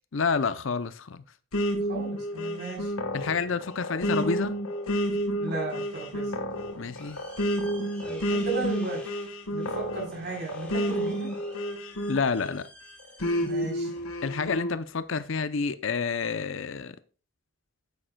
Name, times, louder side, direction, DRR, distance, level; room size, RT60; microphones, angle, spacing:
voice 1, 0.1-1.2 3.1-4.5 6.8-7.2 12.1-12.6 14.2-17.0, left 5 dB, 60° left, 0.6 m, -29 dB
sound 1, 1.5-12.6 13.2-14.7, equal, 85° left, 1.5 m, -30 dB
voice 2, 1.9-2.9 5.4-6.4 8.0-9.0 9.5-11.3 13.4-13.9, right 3 dB, 50° right, 3.9 m, -35 dB
sound 2, 6.3-15.4, left 1 dB, 5° left, 2.6 m, -51 dB
9.4 x 8.8 x 2.3 m
head